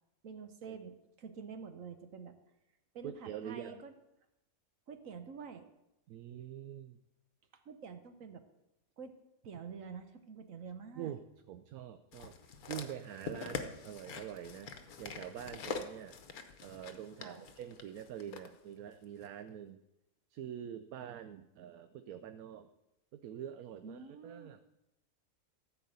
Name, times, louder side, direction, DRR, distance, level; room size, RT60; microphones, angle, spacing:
voice 1, 0.2-2.4 2.9-3.9 4.9-5.7 7.5-8.4 9.0-9.1 9.4-11.1 17.2-17.5 23.8-24.5, right 5 dB, 65° right, 8 dB, 1.3 m, -48 dB
voice 2, 3.0-3.8 6.1-7.0 11.0-11.2 11.5-12.3 12.7-14.7 15.0-16.2 16.6-19.8 20.3-22.7 23.1-24.6, right 10 dB, 85° right, 10 dB, 1.1 m, -45 dB
sound 1, 12.1-18.5 19.2-19.3, left 5 dB, 80° left, 1.4 m, -44 dB
14.0 x 4.7 x 8.0 m, 0.89 s
omnidirectional pair, 1.5 m